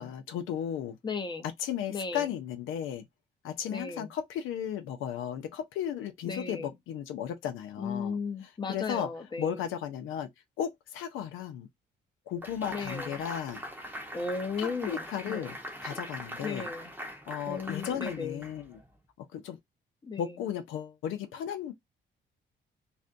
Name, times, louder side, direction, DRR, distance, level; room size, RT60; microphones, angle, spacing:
voice 1, 0.0-1.0 1.6-3.1 3.4-8.2 8.7-9.1 9.4-10.3 10.6-11.7 12.3-13.6 14.6-15.6 15.8-16.7 17.3-18.8 19.2-19.6 20.2-21.7, left 9 dB, 85° left, 0.5 m, -35 dB
voice 2, 1.0-1.5 1.9-2.3 3.7-4.1 6.2-6.8 7.8-9.7 12.7-13.2 14.1-15.6 16.4-16.9 17.5-18.4 20.0-20.4, left 4 dB, 20° left, 0.7 m, -36 dB
sound 1, 12.4-18.9, equal, 10° right, 0.8 m, -42 dB
2.5 x 2.2 x 2.5 m
cardioid pair, 90°, 20 cm